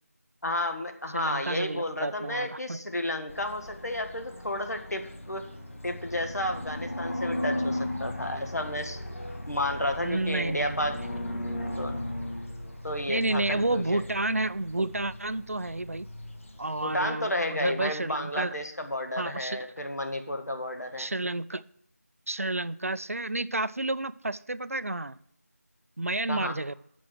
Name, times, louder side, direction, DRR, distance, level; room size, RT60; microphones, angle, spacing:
voice 1, 0.4-5.5 5.8-9.2 9.5-11.0 11.8-12.0 12.8-14.0 16.8-21.1 26.3-26.6, left 1 dB, 75° left, 5 dB, 1.6 m, -32 dB
voice 2, 1.1-2.8 10.0-10.9 13.1-16.1 16.6-18.6 19.2-19.6 21.0-21.6 22.3-25.2 26.0-26.8, right 2 dB, 60° right, 15 dB, 0.4 m, -30 dB
sound 1, 3.3-17.1, left 1 dB, 55° left, 1.5 m, -37 dB
7.7 x 6.0 x 6.4 m, 0.70 s
figure-of-eight pair, 175°, 9 cm